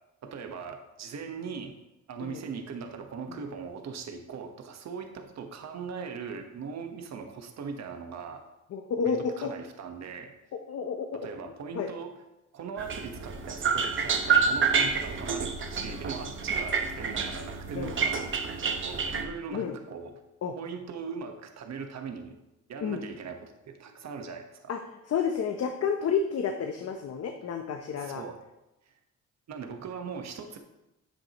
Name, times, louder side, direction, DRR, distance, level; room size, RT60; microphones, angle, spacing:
voice 1, 0.2-1.7 2.1-8.4 9.0-10.3 11.1-12.1 12.5-20.2 20.6-22.4 22.7-24.7 28.0-28.4 28.9-29.0 29.5-30.6, right 5 dB, 60° right, 5 dB, 1.3 m, -40 dB
voice 2, 8.7-9.5 10.5-11.1 11.4-11.9 17.7-17.9 19.5-19.8 20.4-20.5 22.8-23.0 24.7-24.8 25.1-28.2, left 6 dB, 55° left, 5 dB, 0.8 m, -30 dB
sound 1, 12.8-19.2, right 5 dB, 40° right, 1.0 m, -28 dB
9.8 x 7.8 x 3.0 m, 0.94 s
cardioid pair, 90°, 30 cm